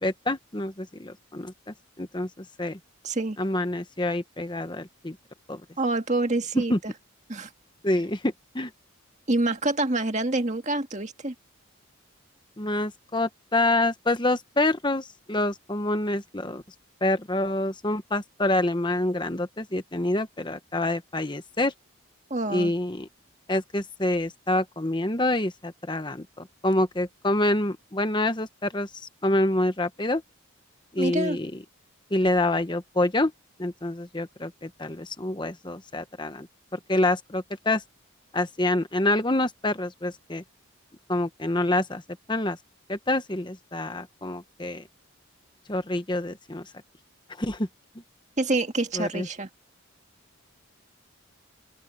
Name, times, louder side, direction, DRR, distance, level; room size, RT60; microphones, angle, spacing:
voice 1, 0.0-1.5 2.0-2.8 3.4-5.2 5.5-5.6 6.7-6.8 7.8-8.7 12.6-16.6 17.0-21.7 22.5-23.1 23.5-30.2 30.9-31.6 32.1-33.3 33.6-36.5 36.7-37.8 38.3-40.4 41.1-42.0 42.3-42.6 42.9-44.8 45.7-46.6 47.4-47.7 48.9-49.3, left 1 dB, 20° left, 1.0 m, -27 dB
voice 2, 3.0-3.4 5.8-6.9 7.3-7.5 9.3-11.3 22.3-22.7 31.0-31.4 48.4-49.5, right 2 dB, 35° right, 1.9 m, -26 dB
open air
head